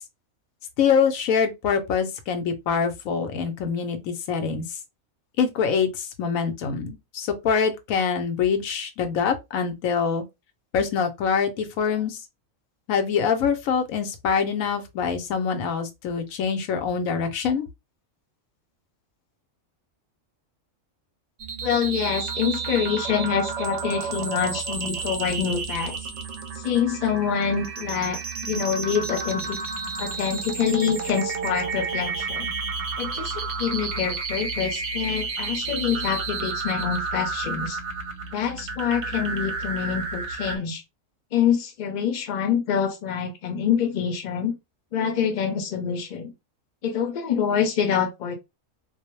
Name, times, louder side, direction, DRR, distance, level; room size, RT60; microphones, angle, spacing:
voice 1, 0.8-4.6 5.4-10.2 10.7-12.2 12.9-17.7, left 6 dB, 90° left, 1.1 m, -24 dB
sound 1, 21.4-40.6, right 4 dB, 65° right, 0.9 m, -31 dB
voice 2, 21.6-26.0 26.6-29.6 30.0-32.5 33.0-37.8 38.3-40.8 41.3-44.5 44.9-46.3 46.8-48.4, left 7 dB, 45° left, 0.6 m, -26 dB
2.5 x 2.0 x 2.9 m
omnidirectional pair, 1.4 m